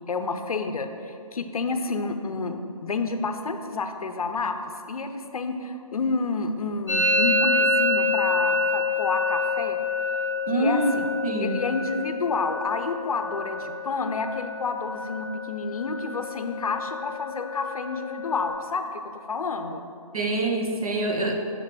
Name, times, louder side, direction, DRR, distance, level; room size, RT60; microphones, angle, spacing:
voice 1, 0.1-4.6 4.9-9.8 10.5-11.1 11.4-19.8, left 4 dB, 65° left, 7 dB, 0.6 m, -29 dB
Musical instrument, 6.9-14.5 14.8-15.4 15.6-16.2 16.5-18.5, left 2 dB, 15° right, 1.2 m, -27 dB
voice 2, 10.5-11.0 11.2-11.6 20.1-21.3, right 2 dB, 65° right, 2 dB, 0.9 m, -25 dB
6.5 x 3.2 x 5.9 m, 2.5 s
hypercardioid pair, 170°, 20 cm